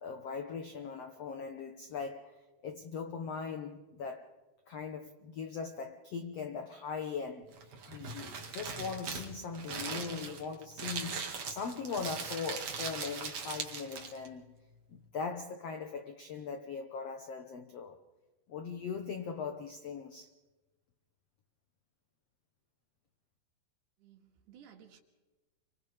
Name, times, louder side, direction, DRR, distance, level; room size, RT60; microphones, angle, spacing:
voice 1, 0.0-2.4 2.6-4.3 4.7-14.5 14.9-18.0 18.5-20.3, left 5 dB, 85° left, 1.4 m, -40 dB
Crumpling crinkling, 7.5-14.3, right 5 dB, 45° right, 2.9 m, -40 dB
voice 2, 24.0-25.0, right 8 dB, 85° right, 4.1 m, -57 dB
29.5 x 25.5 x 3.5 m
omnidirectional pair, 4.6 m